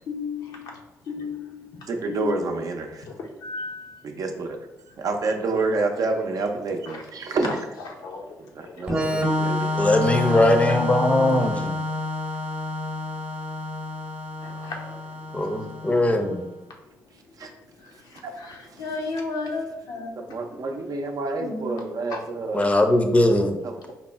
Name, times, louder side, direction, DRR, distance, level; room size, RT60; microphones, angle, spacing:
voice 1, 0.0-2.7 3.0-4.0 6.9-7.0 8.0-9.9 10.2-10.8 14.4-15.5 15.9-16.0 16.6-16.7 17.4-17.5 17.8-21.1 21.4-21.8 22.1-23.0, left 3 dB, 80° left, 1 dB, 0.7 m, -36 dB
voice 2, 1.9-3.0 4.0-4.6 5.0-7.5 8.4-9.8 17.4-17.5 18.2-18.4 18.7-18.8 20.2-22.7 23.6-23.9, right 3 dB, 60° right, 4 dB, 0.5 m, -28 dB
Organ, 8.9-16.4, left 1 dB, 20° right, 0.8 m, -28 dB
voice 3, 9.8-11.8 15.3-16.4 22.5-23.6, left 1 dB, 20° left, 5 dB, 0.6 m, -20 dB
4.1 x 2.0 x 3.4 m, 0.94 s
supercardioid pair, 55°, 7 cm